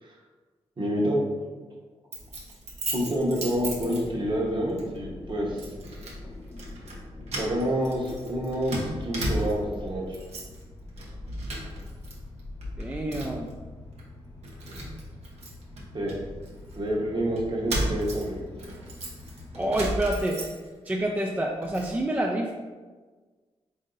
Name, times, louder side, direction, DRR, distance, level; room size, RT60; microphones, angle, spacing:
voice 1, 0.8-1.2 2.9-5.7 7.4-10.2 15.9-16.1 16.8-18.4, equal, 45° right, -3 dB, 1.1 m, -28 dB
Keys jangling, 2.1-4.4 4.8-5.0 5.6-6.2 6.5-7.0 7.3-9.8 10.1-10.6 10.9-12.1 12.4-13.5 14.0-14.1 14.4-16.8 17.4-20.9 21.3-21.9, right 1 dB, 80° right, 0.9 m, -35 dB
sound 1, 3.5-19.7, left 2 dB, 25° left, 0.8 m, -43 dB
voice 2, 12.8-13.5 19.5-20.4 20.9-22.5, right 1 dB, 15° right, 0 dB, 0.4 m, -27 dB
3.8 x 2.7 x 3.8 m, 1.4 s
cardioid pair, 70°, 11 cm